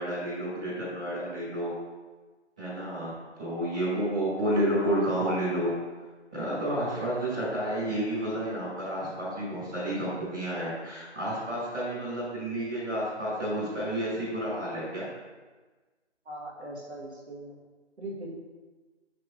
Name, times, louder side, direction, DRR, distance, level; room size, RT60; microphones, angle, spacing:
voice 1, 0.0-1.7 2.6-3.1 3.4-5.7 6.3-15.1, right 1 dB, 5° right, -20 dB, 1.5 m, -30 dB
voice 2, 16.3-17.6 18.0-18.4, right 1 dB, 65° right, -3 dB, 1.7 m, -40 dB
6.6 x 6.0 x 3.6 m, 1.3 s
figure-of-eight pair, 180°, 36 cm